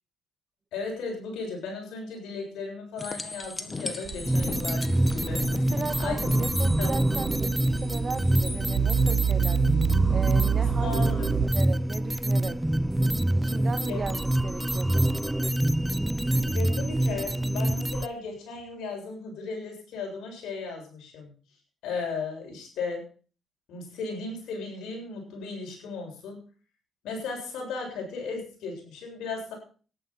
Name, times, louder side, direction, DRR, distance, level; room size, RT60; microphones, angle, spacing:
voice 1, 0.7-5.5 6.0-6.2 6.6-6.9 10.8-11.3 13.9-14.1 16.5-21.3 21.8-23.0 23.7-26.4 27.0-29.5, left 4 dB, 85° left, 0 dB, 7.5 m, -36 dB
sound 1, 3.0-8.6 11.6-11.7, left 3 dB, 25° left, 1.8 m, -37 dB
sound 2, 4.0-11.5, right 7 dB, 85° right, 3.8 m, -29 dB
sound 3, 4.3-18.1, right 1 dB, 5° right, 0.6 m, -26 dB
voice 2, 5.5-9.6 10.1-11.1 11.5-12.6 13.3-15.2, right 4 dB, 40° right, 11 dB, 1.7 m, -36 dB
13.5 x 11.0 x 5.8 m, 0.39 s
cardioid pair, 90°, 0 cm